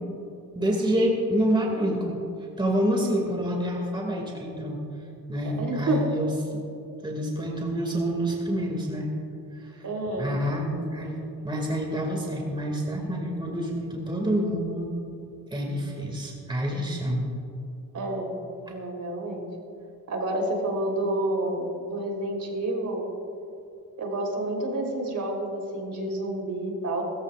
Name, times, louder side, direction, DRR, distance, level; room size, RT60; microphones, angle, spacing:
voice 1, 0.6-2.2 2.6-4.8 5.3-6.6 7.0-9.1 9.5-9.9 10.2-11.1 11.4-14.9 15.5-17.3 18.7-18.8, equal, 10° right, 0 dB, 2.2 m, -27 dB
voice 2, 5.6-6.0 9.8-10.4 17.9-18.3 18.7-19.5 20.1-23.0 24.0-27.0, right 1 dB, 50° right, 0 dB, 3.7 m, -29 dB
20.5 x 14.5 x 2.5 m, 2.8 s
cardioid pair, 85°, 38 cm